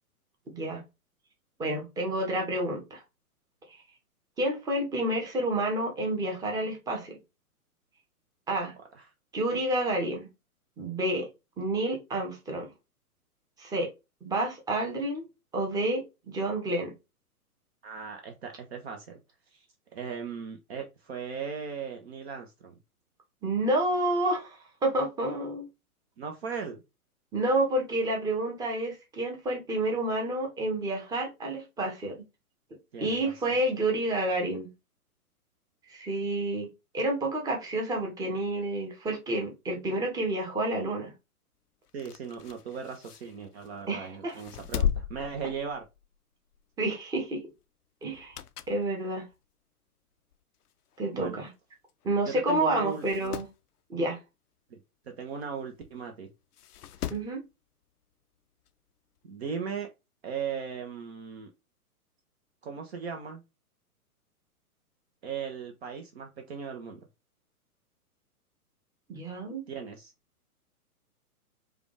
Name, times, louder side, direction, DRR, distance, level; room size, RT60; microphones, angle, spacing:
voice 1, 0.5-0.8 1.6-3.0 4.4-7.2 8.5-8.7 9.3-10.3 10.8-11.3 11.6-12.7 13.6-13.9 14.2-15.3 15.5-16.9 23.4-25.7 27.3-32.2 33.0-34.7 35.9-36.7 36.9-41.1 43.9-44.4 46.8-47.4 48.0-48.4 48.7-49.2 51.0-51.5 52.0-53.4 53.9-54.2 57.1-57.4 69.1-69.6, right 1 dB, 10° right, 0.8 m, -29 dB
voice 2, 17.8-19.2 19.5-19.7 19.9-22.7 26.2-26.8 32.9-33.6 41.9-45.8 51.1-51.4 52.2-53.4 54.7-54.8 55.1-56.3 59.2-59.9 60.2-61.5 62.6-63.4 65.2-67.0 69.7-70.1, right 6 dB, 45° right, 0.8 m, -38 dB
sound 1, 41.9-43.8 44.3-46.2 46.5-46.8 48.0-48.9 49.3-49.4 50.3-50.4 50.7-50.8 50.9-51.0 51.9-52.1 52.4-52.5 52.9-53.6 55.4-55.5 56.5-57.4 58.7-58.8, left 9 dB, 80° left, 0.5 m, -36 dB
4.9 x 2.4 x 3.3 m
figure-of-eight pair, 125°, 45 cm